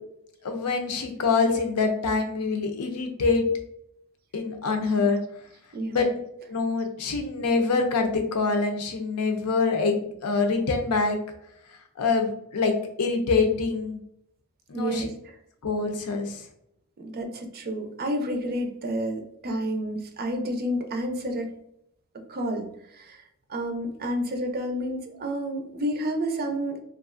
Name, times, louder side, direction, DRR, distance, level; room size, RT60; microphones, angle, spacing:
voice 1, 0.4-3.4 4.3-5.2 5.9-6.1 6.5-11.2 12.0-14.0 14.7-15.1 15.6-16.4, left 4 dB, 85° left, 4 dB, 0.5 m, -25 dB
voice 2, 14.7-15.1 17.0-21.5 22.3-23.2 23.5-26.8, equal, 45° right, 5 dB, 0.5 m, -30 dB
3.1 x 2.3 x 2.4 m, 0.76 s
head